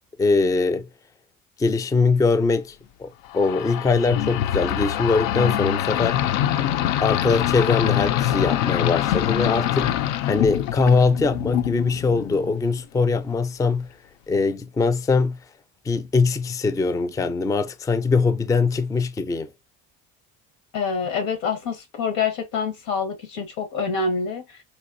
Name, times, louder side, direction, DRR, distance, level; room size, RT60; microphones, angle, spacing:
voice 1, 0.2-0.9 1.6-3.1 3.3-6.2 7.0-9.9 10.3-13.9 14.3-15.4 15.9-19.5, left 4 dB, 10° left, 0.4 m, -22 dB
sound 1, 3.3-12.7, left 12 dB, 70° left, 0.5 m, -24 dB
voice 2, 20.7-24.4, left 5 dB, 90° left, 1.5 m, -26 dB
4.1 x 2.6 x 2.5 m
supercardioid pair, 80°, 39 cm